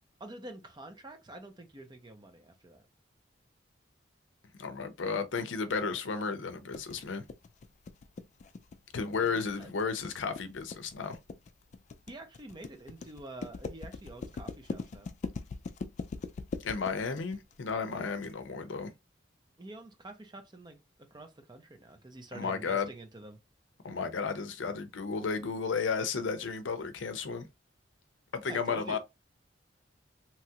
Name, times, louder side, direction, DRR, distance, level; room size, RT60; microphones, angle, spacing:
voice 1, 0.2-2.8 9.1-9.3 9.6-9.7 12.1-15.1 19.6-20.8 21.1-23.4 28.5-29.0, right 2 dB, 25° right, 0.6 m, -47 dB
voice 2, 4.6-7.2 8.9-11.2 16.6-18.9 22.3-22.9 23.8-27.5 28.3-29.0, left 5 dB, 85° left, 0.6 m, -33 dB
sound 1, 6.7-18.3, left 4 dB, 40° left, 0.3 m, -41 dB
3.0 x 2.3 x 2.8 m
head